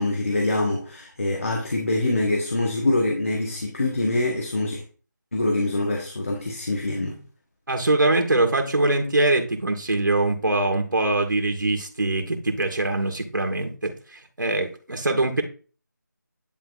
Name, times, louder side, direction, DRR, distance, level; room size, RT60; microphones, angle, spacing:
voice 1, 0.0-4.8 5.3-7.2, left 2 dB, 45° left, 0 dB, 1.6 m, -24 dB
voice 2, 7.7-15.4, right 2 dB, 80° right, 3 dB, 2.1 m, -23 dB
10.5 x 3.6 x 4.1 m, 0.38 s
figure-of-eight pair, 175°, 10 cm